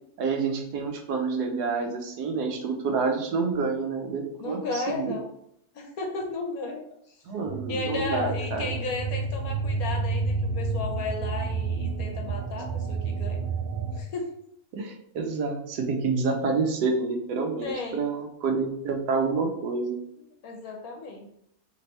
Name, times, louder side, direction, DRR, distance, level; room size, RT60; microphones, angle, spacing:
voice 1, 0.2-5.2 7.3-8.8 14.7-20.0, right 4 dB, 85° right, 3 dB, 1.3 m, -28 dB
voice 2, 4.4-5.3 5.7-7.2 7.7-13.4 13.9-14.3 17.6-18.0 20.4-21.3, left 3 dB, 65° left, 2 dB, 1.3 m, -34 dB
sound 1, 7.5-14.0, right 4 dB, 55° right, 0.6 m, -30 dB
3.4 x 3.3 x 4.0 m, 0.73 s
omnidirectional pair, 1.6 m